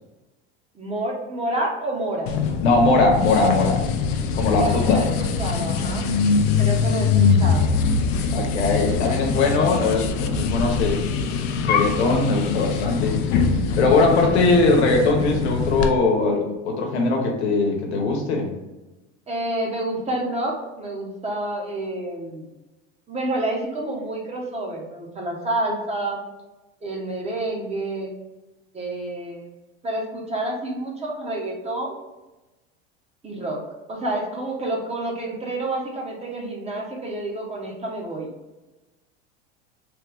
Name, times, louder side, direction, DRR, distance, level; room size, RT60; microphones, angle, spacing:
voice 1, 0.7-2.3 4.6-6.1 6.6-7.7 19.3-22.5 23.1-26.2 26.8-28.1 28.7-29.4 29.8-31.9 33.2-33.6 33.9-38.3, right 1 dB, 20° right, -1 dB, 0.9 m, -29 dB
sound 1, 2.3-15.9, left 5 dB, 60° left, 0.5 m, -23 dB
voice 2, 2.6-3.8 4.3-5.0 8.3-11.0 11.5-13.2 13.8-18.5, left 3 dB, 85° left, 1 dB, 1.0 m, -20 dB
3.3 x 2.3 x 3.4 m, 1.1 s
supercardioid pair, 100°, 32 cm